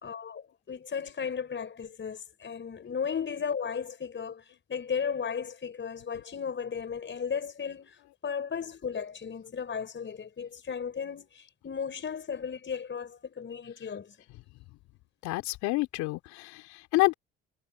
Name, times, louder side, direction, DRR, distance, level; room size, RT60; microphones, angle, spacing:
voice 1, 0.0-4.4 4.7-14.2, left 6 dB, 40° left, 5.3 m, -35 dB
voice 2, 15.2-17.1, left 21 dB, 75° left, 3.3 m, -28 dB
hypercardioid pair, 55°, 29 cm